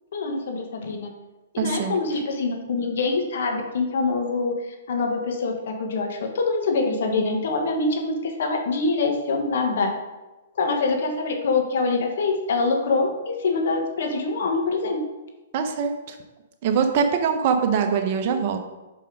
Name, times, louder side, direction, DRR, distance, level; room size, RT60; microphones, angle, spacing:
voice 1, 0.1-1.1 1.5-9.9 10.6-15.0, left 3 dB, 65° left, 3 dB, 1.5 m, -25 dB
voice 2, 1.6-2.0 15.5-16.2 16.6-18.6, right 6 dB, 45° right, 5 dB, 1.0 m, -23 dB
5.5 x 5.3 x 5.1 m, 1.1 s
hypercardioid pair, 135°, 0 cm